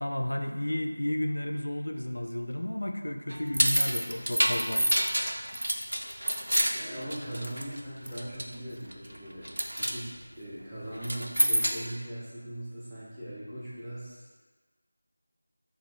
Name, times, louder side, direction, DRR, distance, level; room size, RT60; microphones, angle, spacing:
voice 1, 0.0-4.9, left 1 dB, 65° left, 5 dB, 0.3 m, -32 dB
sound 1, 3.3-7.8 8.1-8.5 8.9-9.2 9.4-10.0 11.0-11.9, equal, 70° right, 0.4 m, -27 dB
voice 2, 6.3-9.5 9.8-14.3, right 1 dB, 5° right, -13 dB, 0.6 m, -40 dB
3.0 x 2.4 x 3.9 m, 1.3 s
figure-of-eight pair, 170°, 0 cm